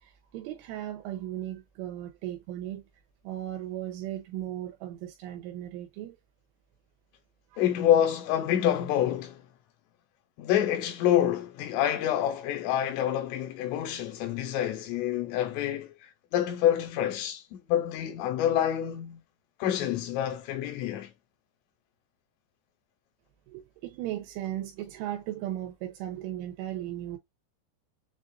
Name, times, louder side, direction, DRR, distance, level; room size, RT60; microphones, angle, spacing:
voice 1, 0.0-2.8 3.2-6.2 7.5-7.6 23.5-27.2, right 13 dB, 85° right, 3.2 m, -36 dB
voice 2, 7.6-9.4 10.4-15.9 16.3-17.4 17.7-19.2 19.6-21.1, left 11 dB, 85° left, 3.6 m, -27 dB
7.5 x 2.5 x 2.5 m
omnidirectional pair, 5.7 m